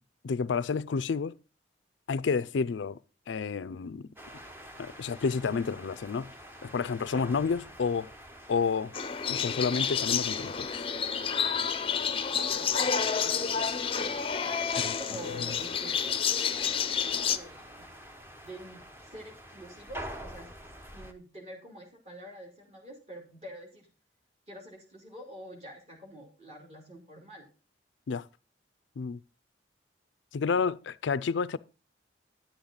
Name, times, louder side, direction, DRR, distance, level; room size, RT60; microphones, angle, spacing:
voice 1, 0.2-1.4 2.1-3.0 3.3-4.1 4.8-6.3 6.6-8.1 8.5-8.9 9.3-10.9 14.8-14.9 15.4-15.5 28.1-28.3 29.0-29.2 30.3-31.6, left 5 dB, 85° left, 0.4 m, -30 dB
sound 1, 4.2-21.1, right 1 dB, 10° right, 0.8 m, -48 dB
sound 2, 8.9-17.4, left 7 dB, 30° left, 0.6 m, -29 dB
voice 2, 12.3-13.7 14.4-17.8 18.4-20.5 20.9-23.9 24.5-27.5, equal, 35° right, 3.2 m, -46 dB
10.5 x 8.6 x 3.8 m
head